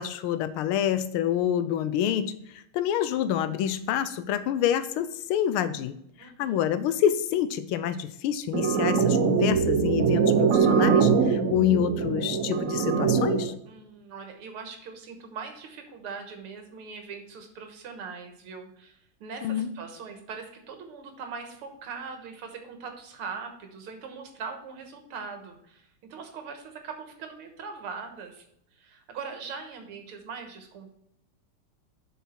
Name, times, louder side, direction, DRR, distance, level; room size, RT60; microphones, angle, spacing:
voice 1, 0.0-13.5 19.4-19.7, left 10 dB, 85° left, 13 dB, 1.5 m, -27 dB
voice 2, 6.2-6.6 13.7-28.4 28.8-30.9, right 5 dB, 85° right, 5 dB, 2.2 m, -41 dB
sound 1, 8.5-13.5, right 6 dB, 70° right, 0.7 m, -23 dB
7.2 x 5.6 x 4.4 m, 0.75 s
omnidirectional pair, 2.4 m